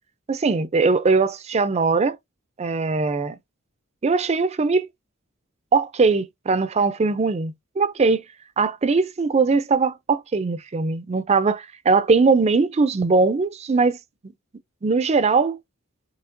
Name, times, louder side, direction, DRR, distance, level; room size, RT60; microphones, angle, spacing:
voice 1, 0.3-2.2 2.6-3.4 4.0-4.9 5.7-8.2 8.6-14.0 14.8-15.6, right 4 dB, 30° right, 0.4 m, -20 dB
6.9 x 2.8 x 2.5 m
head